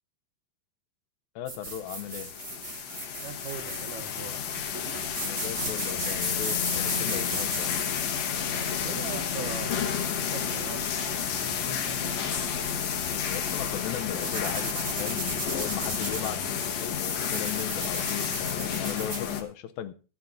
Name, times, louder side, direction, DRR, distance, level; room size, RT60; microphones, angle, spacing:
voice 1, 1.4-2.3 5.2-7.8 13.3-16.4 16.8-19.9, left 11 dB, 80° left, 2.4 m, -37 dB
sound 1, 1.5-19.3, right 2 dB, 30° right, 1.4 m, -39 dB
sound 2, 1.8-19.4, left 7 dB, 60° left, 1.9 m, -31 dB
voice 2, 3.2-4.7 8.8-12.6, right 7 dB, 70° right, 2.2 m, -42 dB
24.5 x 9.2 x 2.6 m
omnidirectional pair, 4.3 m